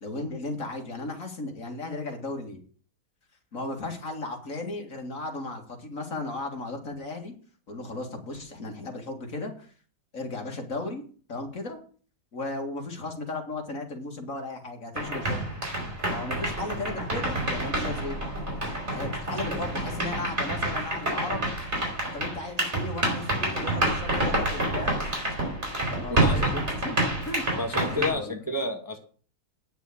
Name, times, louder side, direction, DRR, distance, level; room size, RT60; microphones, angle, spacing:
voice 1, 0.0-2.6 3.5-7.3 7.7-9.7 10.1-11.0 11.3-11.8 12.3-15.4 16.1-18.2 18.9-21.4 22.1-25.0 25.9-27.4 27.8-28.4, left 2 dB, 55° left, 3 dB, 2.5 m, -35 dB
sound 1, 15.0-28.1, right 1 dB, 45° right, 4.7 m, -28 dB
voice 2, 26.1-26.5 27.6-29.0, left 2 dB, 15° right, 3 dB, 1.1 m, -30 dB
9.5 x 6.2 x 8.4 m, 0.42 s
omnidirectional pair, 1.7 m